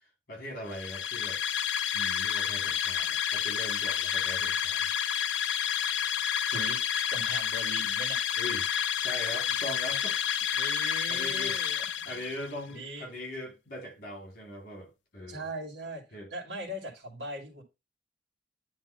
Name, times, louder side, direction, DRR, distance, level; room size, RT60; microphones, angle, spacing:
voice 1, 0.3-1.4 1.9-4.9 8.4-8.7 9.0-10.2 10.8-11.6 12.0-15.4 16.1-16.3, left 1 dB, 55° left, 4.1 m, -41 dB
sound 1, 0.7-12.5, left 9 dB, 85° left, 0.4 m, -30 dB
voice 2, 7.1-8.2 10.5-12.2 12.7-13.1 15.3-16.0 16.3-17.6, right 1 dB, 70° right, 2.0 m, -39 dB
9.1 x 3.0 x 5.3 m
head